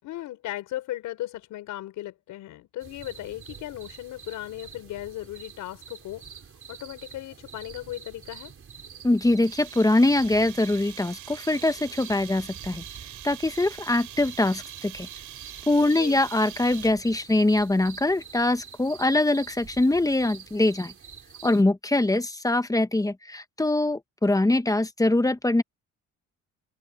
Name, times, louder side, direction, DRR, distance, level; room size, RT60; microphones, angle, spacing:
voice 1, 0.0-6.3 6.7-8.5 15.8-16.2, left 14 dB, 90° left, 5.0 m, -37 dB
sound 1, 2.8-21.6, right 7 dB, 45° right, 5.4 m, -46 dB
voice 2, 9.0-12.8 13.2-15.1 15.7-20.9 21.4-25.6, left 2 dB, 10° left, 1.2 m, -23 dB
sound 2, 9.4-17.2, right 14 dB, 85° right, 5.8 m, -44 dB
open air
cardioid pair, 90°, 30 cm